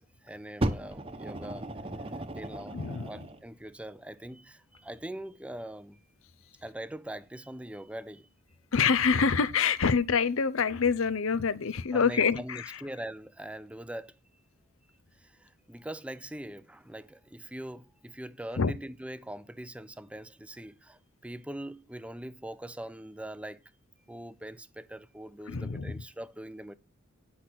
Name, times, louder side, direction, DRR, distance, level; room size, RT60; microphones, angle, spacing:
voice 1, 0.0-1.7 2.3-2.8 3.1-6.0 6.6-8.3 11.9-14.2 15.2-23.6 24.1-26.7, right 1 dB, 5° right, 0.4 m, -42 dB
Fire, 0.6-3.4 4.2-4.3, right 1 dB, 25° right, 0.9 m, -35 dB
voice 2, 2.7-3.2 8.7-12.8 18.6-18.7 25.5-26.0, left 5 dB, 65° left, 0.7 m, -26 dB
10.0 x 5.8 x 6.2 m
head